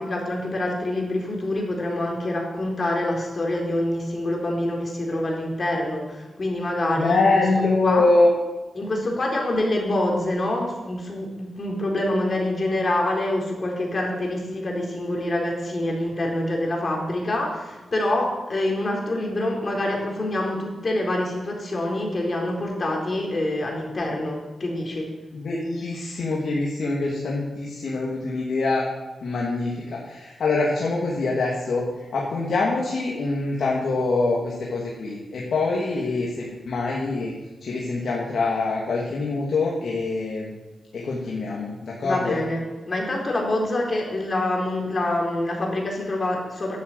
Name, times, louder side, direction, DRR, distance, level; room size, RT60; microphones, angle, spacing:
voice 1, 0.0-7.3 7.8-8.1 8.8-25.1 42.0-46.8, left 1 dB, 45° left, 0 dB, 4.1 m, -26 dB
voice 2, 7.0-8.3 25.3-28.8 29.2-37.3 37.6-40.5 40.9-42.4, left 3 dB, 75° left, -3 dB, 2.4 m, -24 dB
11.5 x 8.2 x 8.0 m, 1.2 s
cardioid pair, 60°, 0 cm